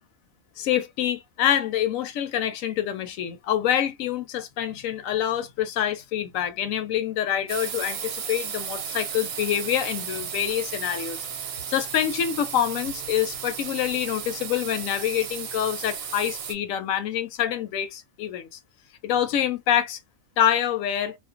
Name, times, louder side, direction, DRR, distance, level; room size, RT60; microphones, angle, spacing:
voice 1, 0.6-11.2 11.7-18.6 19.0-20.0 20.4-21.2, left 10 dB, 85° left, 1.0 m, -26 dB
sound 1, 7.5-16.5, right 8 dB, 90° right, 1.0 m, -34 dB
2.5 x 2.1 x 2.4 m
omnidirectional pair, 1.4 m